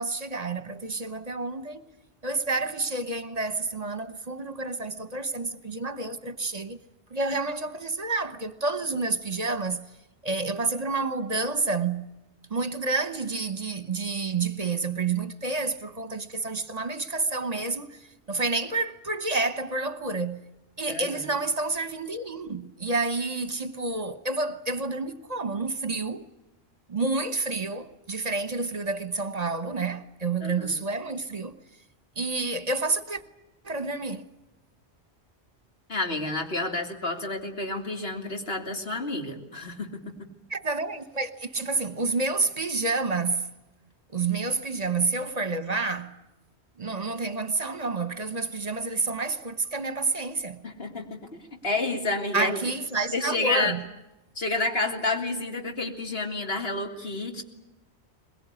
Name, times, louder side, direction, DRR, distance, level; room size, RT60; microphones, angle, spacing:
voice 1, 0.0-1.8 2.2-6.8 7.1-9.8 10.2-12.1 12.5-20.4 20.8-26.3 26.9-31.6 32.2-33.2 33.6-34.3 40.5-43.5 44.1-46.2 46.8-50.6 52.3-53.8, right 3 dB, 35° right, 1.2 m, -29 dB
voice 2, 20.9-21.3 30.4-30.7 35.9-40.3 50.6-51.2 51.6-52.6 53.1-53.7 54.3-57.4, left 2 dB, 60° left, 3.3 m, -30 dB
22.5 x 21.5 x 9.8 m
omnidirectional pair, 1.1 m